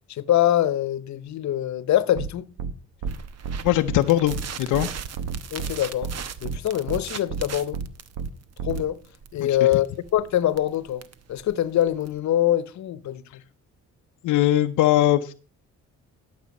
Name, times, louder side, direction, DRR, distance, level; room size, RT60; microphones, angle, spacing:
voice 1, 0.1-2.5 5.5-6.1 6.4-7.8 8.6-9.0 9.3-11.0 11.3-13.4, left 12 dB, 65° left, 0.9 m, -24 dB
sound 1, 2.2-2.3 2.6-2.7 3.0-3.1 3.4-3.6 3.9-4.0 4.3-4.4 4.7-4.9 5.2-5.7 6.0-6.1 6.4-6.6 6.9-7.0 7.3-7.4 7.7-7.9 8.2-8.3 8.6-8.8, right 6 dB, 90° right, 1.0 m, -30 dB
sound 2, 3.0-12.2, right 7 dB, 60° right, 1.0 m, -39 dB
voice 2, 3.6-4.9 9.4-9.6 14.2-15.3, left 14 dB, 90° left, 0.6 m, -21 dB
12.5 x 6.9 x 5.3 m
cardioid pair, 90°, 30 cm